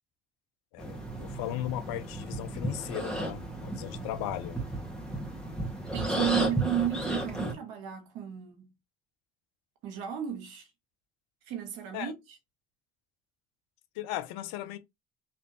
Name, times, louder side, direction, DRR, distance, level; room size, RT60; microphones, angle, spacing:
voice 1, 0.7-4.6 6.0-6.5 11.9-12.1 14.0-14.8, left 12 dB, 75° left, 0.7 m, -37 dB
cat breath, 0.8-7.5, right 1 dB, ahead, 1.8 m, -34 dB
voice 2, 5.9-8.7 9.8-10.7 11.5-12.1, right 11 dB, 75° right, 1.4 m, -33 dB
4.4 x 3.3 x 2.9 m
hypercardioid pair, 60°, 37 cm